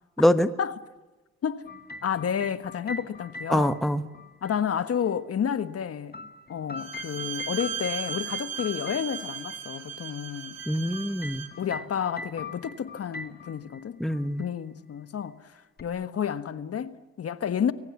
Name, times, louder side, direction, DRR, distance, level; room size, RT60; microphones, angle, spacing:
voice 1, 0.2-0.5 3.5-4.1 10.7-11.5 14.0-14.4, left 1 dB, ahead, 1.1 m, -24 dB
sound 1, 1.7-4.6 5.8-9.6 10.6-13.8 14.1-14.5 15.8-15.9, left 3 dB, 30° left, 2.3 m, -42 dB
voice 2, 2.0-3.8 4.4-6.1 6.5-10.6 11.6-14.0 14.4-15.4 15.8-17.7, left 8 dB, 50° left, 1.4 m, -30 dB
Bowed string instrument, 6.8-11.6, right 8 dB, 55° right, 3.2 m, -36 dB
29.5 x 23.0 x 7.3 m
cardioid pair, 90°, 30 cm